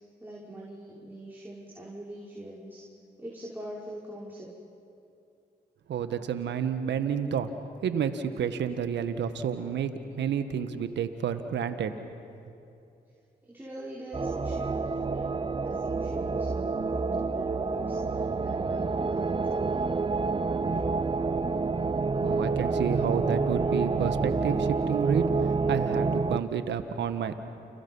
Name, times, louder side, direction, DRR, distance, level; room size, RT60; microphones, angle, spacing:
voice 1, 0.2-2.8 3.2-4.5 13.4-20.0 20.6-20.9, right 1 dB, 10° right, -6 dB, 5.9 m, -42 dB
voice 2, 5.9-7.5 7.8-12.0 22.2-27.3, right 7 dB, 75° right, 9 dB, 1.6 m, -30 dB
sound 1, 14.1-26.4, right 4 dB, 25° right, 0.8 m, -28 dB
30.0 x 29.5 x 5.6 m, 2.7 s
supercardioid pair, 50°, 18 cm